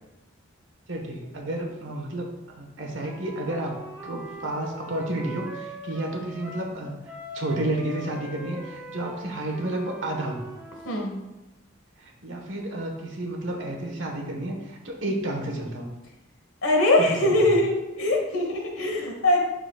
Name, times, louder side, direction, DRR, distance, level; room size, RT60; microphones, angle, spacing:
voice 1, 0.9-3.7 4.0-6.9 7.3-10.4 12.0-15.9 17.0-17.6, right 1 dB, 70° right, 1 dB, 1.3 m, -31 dB
Wind instrument woodwind instrument, 3.0-6.7 7.0-11.1, right 2 dB, 5° right, 0.7 m, -41 dB
voice 2, 10.8-11.2 16.6-19.4, left 1 dB, 90° left, 1 dB, 1.4 m, -22 dB
11.5 x 4.0 x 2.4 m, 1.0 s
head